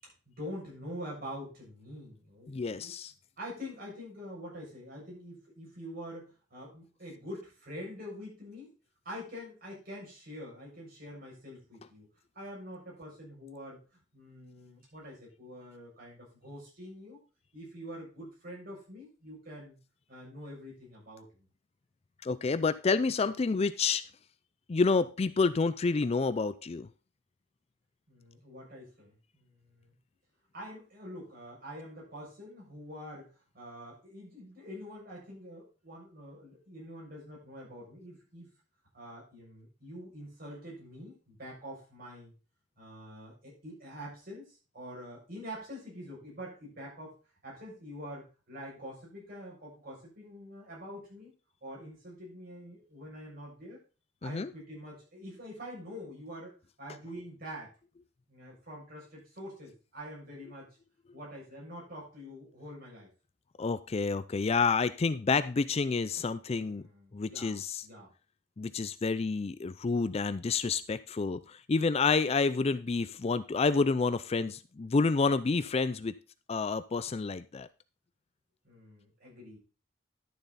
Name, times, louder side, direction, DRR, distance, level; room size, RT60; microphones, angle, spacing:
voice 1, 0.0-2.9 3.4-8.7 9.0-12.1 12.3-13.8 14.1-17.2 17.5-19.8 20.1-21.3 28.1-29.9 30.5-33.3 33.5-38.5 38.9-42.3 42.8-47.2 47.4-51.3 51.6-53.8 54.2-56.5 56.8-57.7 58.3-60.7 61.1-63.1 66.5-68.1 78.6-79.6, equal, 50° right, -4 dB, 6.8 m, -45 dB
voice 2, 2.5-3.1 22.2-24.0 24.7-26.9 54.2-54.5 63.6-66.8 67.1-67.8 68.6-76.1 76.5-77.7, left 4 dB, 30° left, 14 dB, 0.4 m, -29 dB
11.5 x 7.0 x 4.1 m, 0.34 s
head